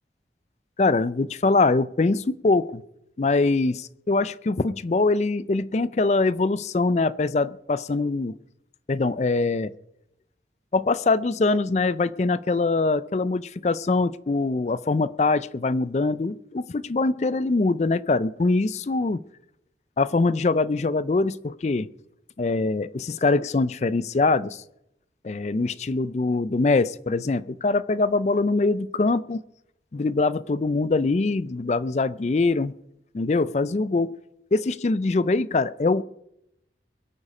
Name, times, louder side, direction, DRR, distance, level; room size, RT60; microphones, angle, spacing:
voice 1, 0.8-2.8 3.2-8.3 8.9-9.7 10.7-19.2 20.0-21.9 22.4-24.6 25.2-29.4 29.9-32.7 33.1-34.1 34.5-36.0, left 3 dB, 40° left, 0.4 m, -23 dB
22.5 x 8.4 x 4.9 m
head